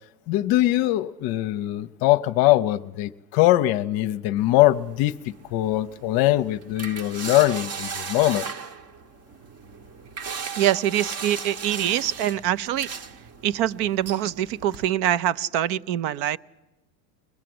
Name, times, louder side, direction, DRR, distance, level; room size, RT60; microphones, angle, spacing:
voice 1, 0.3-5.2 5.5-8.5, left 15 dB, 45° left, 0.8 m, -22 dB
sound 1, 4.4-14.9, right 5 dB, 30° right, 1.1 m, -37 dB
voice 2, 10.6-12.9 13.4-16.4, right 11 dB, 50° right, 0.8 m, -24 dB
21.5 x 21.5 x 7.8 m
supercardioid pair, 120°, 50 cm